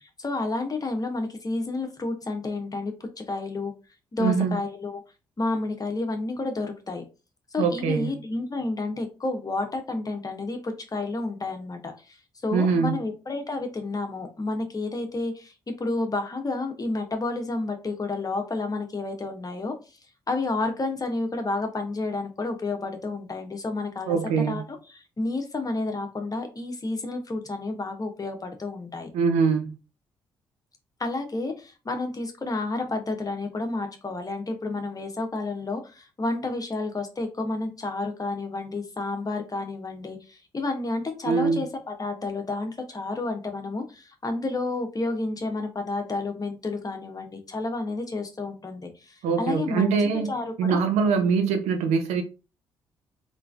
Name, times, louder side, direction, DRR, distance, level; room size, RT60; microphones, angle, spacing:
voice 1, 0.2-3.7 4.1-5.0 5.4-7.0 7.5-12.2 12.4-19.7 20.3-24.2 24.5-29.1 31.0-49.9 50.1-51.3, left 2 dB, 30° left, 1.2 m, -30 dB
voice 2, 4.2-4.6 7.6-8.1 12.5-13.0 24.1-24.6 29.1-29.7 41.2-41.6 49.2-50.3 50.6-52.2, right 5 dB, 65° right, 0.6 m, -23 dB
3.7 x 3.4 x 2.5 m
figure-of-eight pair, 40°, 12 cm